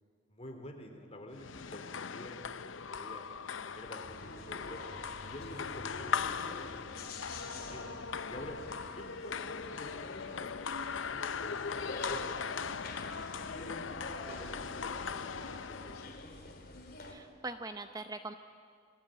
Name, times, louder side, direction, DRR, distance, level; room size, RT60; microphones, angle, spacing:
voice 1, 0.3-3.3 3.6-4.8 5.2-7.8 8.3-8.6 9.0-16.0, equal, 30° left, 4 dB, 3.3 m, -50 dB
sound 1, 1.3-16.2, left 6 dB, 85° left, 0.7 m, -40 dB
sound 2, 4.0-17.1, left 2 dB, 50° left, 3.3 m, -46 dB
voice 2, 17.0-18.3, right 3 dB, 20° right, 8 dB, 0.7 m, -42 dB
28.5 x 20.5 x 9.1 m, 2.2 s
head